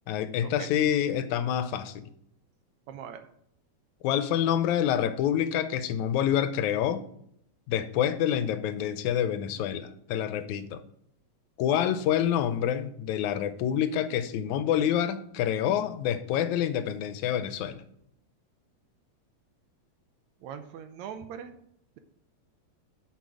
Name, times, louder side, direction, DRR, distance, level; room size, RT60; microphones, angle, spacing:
voice 1, 0.1-2.1 4.0-7.1 7.7-10.8 11.6-17.8, left 10 dB, 85° left, 2.1 m, -27 dB
voice 2, 2.9-3.2 20.4-21.6, right 8 dB, 80° right, 2.0 m, -41 dB
8.3 x 6.4 x 4.8 m
omnidirectional pair, 3.3 m